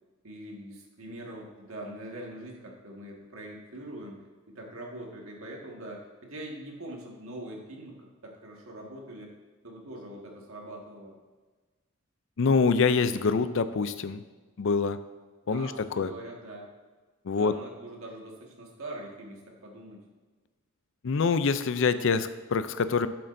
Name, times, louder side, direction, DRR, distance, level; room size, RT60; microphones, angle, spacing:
voice 1, 0.2-9.3 9.6-11.2 15.5-16.7 17.3-20.0, right 1 dB, 85° right, -1 dB, 1.7 m, -43 dB
voice 2, 12.4-14.2 14.6-15.0 15.5-16.1 17.2-17.5 21.0-23.1, left 5 dB, 65° left, 12 dB, 0.5 m, -25 dB
12.0 x 7.7 x 2.6 m, 1.3 s
head